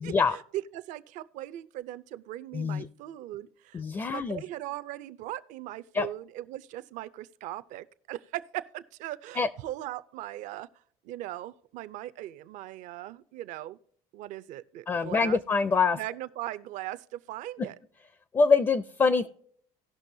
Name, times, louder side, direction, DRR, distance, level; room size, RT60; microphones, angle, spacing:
voice 1, 0.0-10.7 11.0-13.8 14.1-15.4 16.0-17.8, right 14 dB, 65° right, 0.6 m, -39 dB
voice 2, 2.5-2.9 3.7-4.4 5.9-6.1 9.4-9.5 14.9-16.0 18.3-19.3, left 4 dB, 20° left, 0.4 m, -24 dB
18.0 x 6.0 x 2.7 m
cardioid pair, 150°, 14 cm